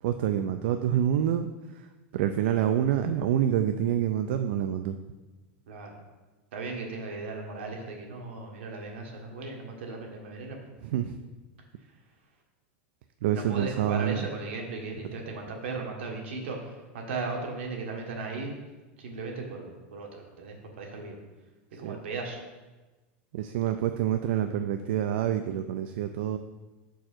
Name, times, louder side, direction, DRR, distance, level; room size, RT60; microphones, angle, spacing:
voice 1, 0.0-5.0 10.8-11.2 13.2-14.2 15.0-15.1 21.8-22.0 23.3-26.4, right 10 dB, 75° right, 8 dB, 0.4 m, -27 dB
voice 2, 6.5-10.6 13.3-18.5 19.0-21.2 21.7-22.4, right 3 dB, 90° right, 1 dB, 1.4 m, -37 dB
6.1 x 4.6 x 4.4 m, 1.2 s
supercardioid pair, 150°, 6 cm